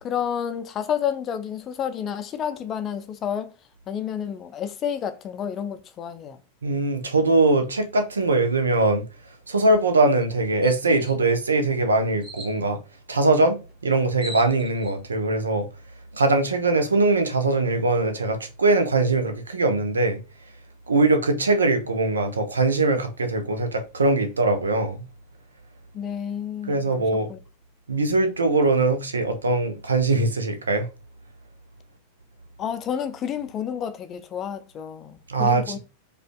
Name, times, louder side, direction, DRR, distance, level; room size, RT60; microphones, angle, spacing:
voice 1, 0.0-3.5 3.9-6.4 25.9-26.8 27.3-27.4 32.6-35.8, left 8 dB, 30° left, 0.4 m, -30 dB
voice 2, 6.6-9.0 9.5-12.8 13.1-13.6 13.8-15.7 16.2-20.2 20.9-25.0 26.7-27.3 27.9-30.9 35.3-35.8, right 2 dB, 75° right, 0.6 m, -21 dB
sound 1, 9.6-9.8 10.2-10.3 10.6-11.2 12.2-12.5 13.7-13.8 14.0-14.9, right 1 dB, 15° right, 1.6 m, -39 dB
4.9 x 2.4 x 2.2 m
figure-of-eight pair, 90°, 0 cm